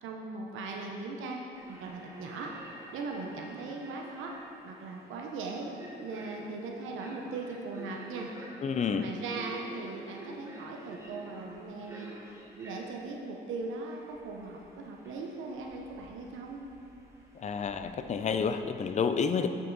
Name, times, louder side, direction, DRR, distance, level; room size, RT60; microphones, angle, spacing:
voice 1, 0.0-1.4 1.7-4.3 4.6-5.7 6.0-8.3 8.9-12.1 12.5-16.6, right 3 dB, 85° right, 0 dB, 0.8 m, -39 dB
sound 1, 1.5-18.6, right 1 dB, 15° right, 1.2 m, -50 dB
voice 2, 8.6-9.1 17.4-19.5, left 6 dB, 35° left, 8 dB, 0.5 m, -29 dB
8.5 x 5.5 x 3.9 m, 2.7 s
cardioid pair, 90°, 20 cm